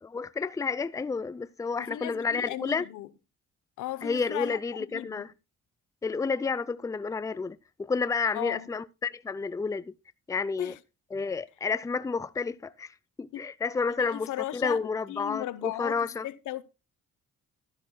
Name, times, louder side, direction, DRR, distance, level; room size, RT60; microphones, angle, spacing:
voice 1, 0.0-2.9 4.0-5.3 6.0-9.9 10.3-10.7 11.1-12.9 13.2-16.3, left 4 dB, 10° left, 0.4 m, -30 dB
voice 2, 1.8-3.1 3.8-4.6 4.9-5.3 8.3-8.7 10.6-10.8 13.3-13.4 14.0-16.0 16.2-16.6, left 14 dB, 85° left, 0.8 m, -36 dB
12.5 x 10.5 x 2.2 m
cardioid pair, 90°, 30 cm